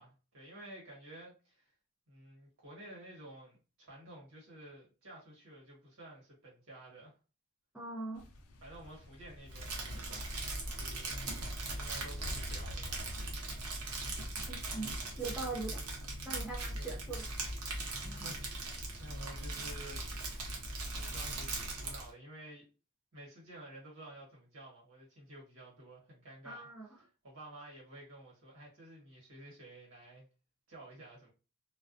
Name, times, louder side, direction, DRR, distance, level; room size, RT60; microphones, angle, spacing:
voice 1, 0.0-1.7 2.1-7.1 8.6-10.3 10.8-11.5 11.7-13.1 16.7-17.0 17.9-20.5 20.9-22.7 23.1-26.7 27.0-30.2 30.7-31.3, right 1 dB, 65° right, 1.3 m, -52 dB
voice 2, 7.7-8.2 14.5-14.9 15.2-15.8 16.2-17.3 26.4-26.9, right 3 dB, 5° right, 0.5 m, -41 dB
sound 1, 8.1-13.3, left 1 dB, 80° left, 0.5 m, -49 dB
Crumpling crinkling, 9.5-22.1, right 2 dB, 80° right, 0.7 m, -39 dB
2.3 x 2.2 x 2.5 m
head